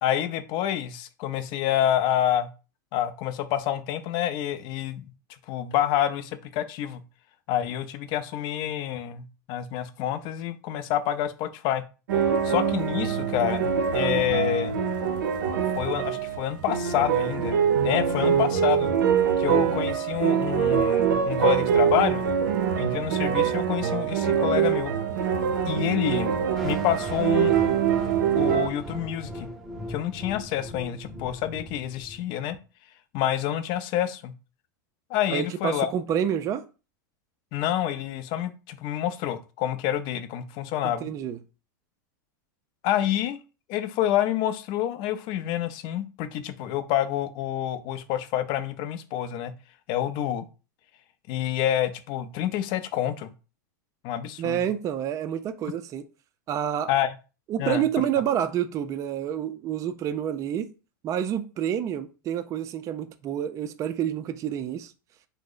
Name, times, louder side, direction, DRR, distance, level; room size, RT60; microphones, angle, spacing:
voice 1, 0.0-2.5 2.9-5.1 5.5-7.0 7.5-11.8 12.4-14.8 15.7-18.9 19.4-22.3 22.8-24.9 25.6-27.5 28.3-29.5 29.9-32.6 33.1-34.3 35.1-35.9 37.5-41.1 42.8-43.4 43.7-49.5 49.9-50.5 51.3-53.3 54.0-54.6 56.9-57.1 57.6-57.8, left 11 dB, 50° left, 0.4 m, -28 dB
sound 1, 12.1-28.7, right 8 dB, 80° right, 0.6 m, -24 dB
sound 2, 26.5-32.6, left 1 dB, ahead, 0.7 m, -38 dB
voice 2, 35.3-36.6 40.8-41.4 54.4-56.1 56.5-56.9 57.5-60.7 61.0-64.9, right 9 dB, 30° right, 0.3 m, -28 dB
2.9 x 2.0 x 3.7 m
hypercardioid pair, 105°, 11 cm